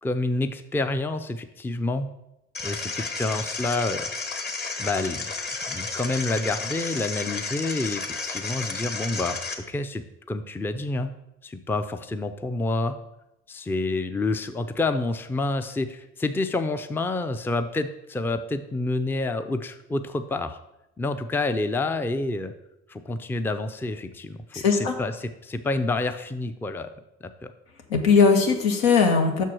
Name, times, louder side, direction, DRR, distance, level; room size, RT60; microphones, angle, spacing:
voice 1, 0.0-2.1 2.6-4.1 4.8-5.3 5.7-9.4 9.7-11.1 11.4-13.0 13.5-20.6 21.0-22.5 22.9-24.4 24.7-26.9 27.2-27.3, left 2 dB, 5° left, 9 dB, 0.4 m, -28 dB
sound 1, 2.5-9.5, left 3 dB, 30° left, 1.2 m, -32 dB
voice 2, 24.5-24.9 27.9-29.4, left 5 dB, 80° left, 4 dB, 1.1 m, -19 dB
6.1 x 4.6 x 6.1 m, 0.87 s
hypercardioid pair, 65°, 33 cm